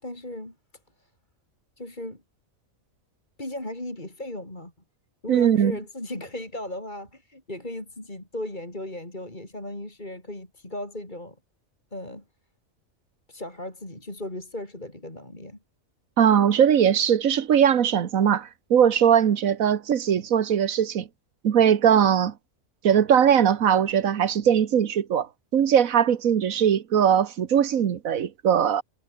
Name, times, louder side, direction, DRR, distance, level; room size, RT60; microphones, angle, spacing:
voice 1, 0.0-0.5 1.0-1.1 1.8-2.2 3.4-4.7 5.2-11.4 11.9-12.2 13.3-15.6, left 1 dB, 35° left, 5.2 m, -36 dB
voice 2, 5.3-5.8 16.2-21.1 21.4-22.3 22.8-28.8, right 8 dB, 85° right, 1.5 m, -20 dB
omnidirectional pair, 1.4 m